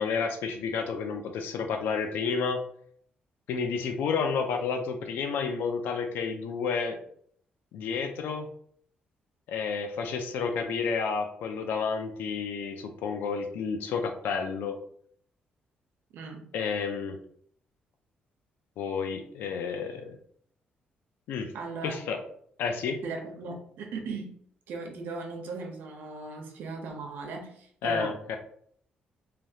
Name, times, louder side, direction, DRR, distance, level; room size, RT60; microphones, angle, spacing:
voice 1, 0.0-2.6 3.5-7.0 7.7-8.5 9.5-14.8 16.5-17.2 18.8-20.2 21.3-21.5 21.8-22.2 22.6-23.0 27.8-28.4, left 5 dB, 85° left, 5 dB, 0.4 m, -30 dB
voice 2, 16.1-16.4 21.5-22.0 23.0-24.3 24.7-28.1, right 4 dB, 80° right, 3 dB, 0.7 m, -38 dB
3.3 x 2.3 x 2.7 m, 0.63 s
cardioid pair, 135°, 3 cm